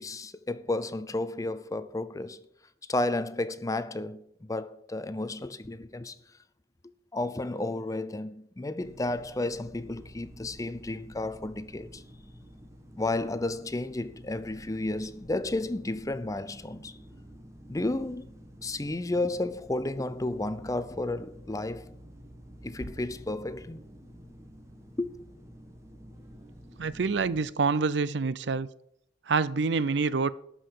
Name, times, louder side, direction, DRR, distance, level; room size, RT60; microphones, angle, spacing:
voice 1, 0.0-2.4 2.9-6.2 7.1-12.0 13.0-17.0 17.7-18.3 18.6-21.9 22.6-23.8 25.0-25.1, left 2 dB, 20° left, 0.5 m, -32 dB
sound 1, 8.8-27.5, equal, 15° right, 1.5 m, -50 dB
voice 2, 26.8-28.7 29.3-30.3, right 4 dB, 70° right, 0.5 m, -26 dB
12.0 x 5.5 x 8.9 m
head